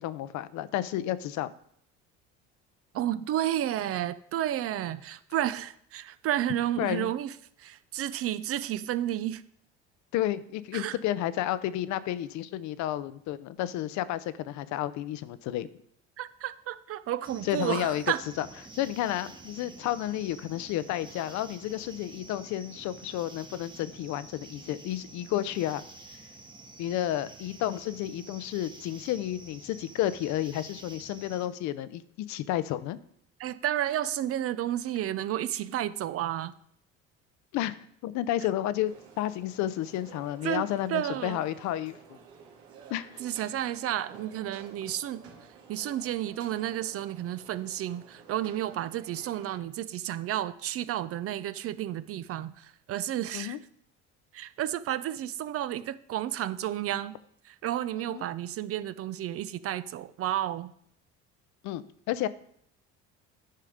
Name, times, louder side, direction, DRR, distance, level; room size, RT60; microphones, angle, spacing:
voice 1, 0.0-1.5 6.8-7.1 10.1-15.7 17.4-18.0 18.4-18.5 18.7-25.8 26.8-33.0 37.5-37.8 38.0-42.2 42.9-43.1 53.3-53.6 57.9-58.2 61.6-62.3, left 13 dB, 65° left, 16 dB, 0.7 m, -31 dB
voice 2, 2.9-7.3 7.6-9.4 10.7-11.0 16.2-18.2 33.4-36.5 40.4-41.4 43.2-45.2 45.7-53.6 54.3-57.1 57.4-60.7, right 12 dB, 50° right, 14 dB, 0.5 m, -31 dB
sound 1, 17.2-31.5, right 3 dB, 15° right, 1.2 m, -49 dB
sound 2, 38.9-49.6, right 6 dB, 85° right, 2.2 m, -52 dB
10.0 x 5.6 x 5.1 m, 0.68 s
supercardioid pair, 100°, 30 cm